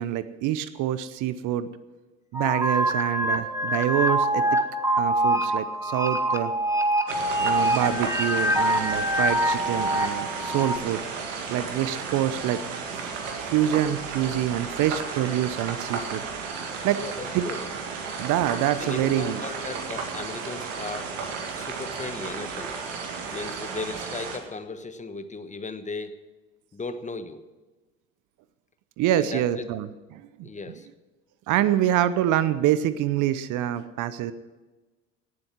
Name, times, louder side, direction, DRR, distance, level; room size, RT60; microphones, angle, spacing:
voice 1, 0.0-1.7 2.3-4.4 5.0-6.5 7.4-11.0 11.5-12.6 13.4-16.2 16.8-17.0 17.3-17.4 18.2-19.4 29.0-30.5 31.5-34.3, right 12 dB, 50° right, 14 dB, 0.8 m, -26 dB
sound 1, 2.3-10.8, right 1 dB, 10° right, 1.4 m, -25 dB
sound 2, 7.1-24.4, right 5 dB, 75° right, 2.1 m, -34 dB
voice 2, 16.9-17.6 18.8-21.1 21.6-22.7 23.3-26.2 26.7-27.4 29.2-29.7 30.4-30.9, left 3 dB, 20° left, 10 dB, 1.2 m, -36 dB
17.5 x 7.9 x 7.5 m, 1.2 s
hypercardioid pair, 65°, 39 cm